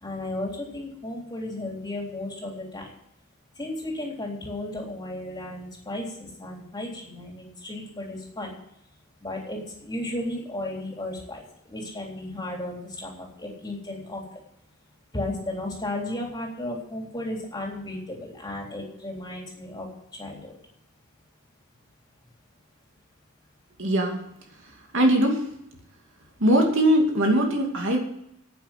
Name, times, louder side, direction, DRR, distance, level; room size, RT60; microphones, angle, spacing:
voice 1, 0.0-2.9 3.6-8.5 9.2-14.2 15.1-19.9 20.1-20.5, left 1 dB, 20° left, -1 dB, 3.5 m, -34 dB
voice 2, 23.8-24.2 24.9-25.4 26.4-28.0, right 1 dB, 60° right, 2 dB, 2.5 m, -21 dB
10.5 x 8.8 x 9.2 m, 0.75 s
head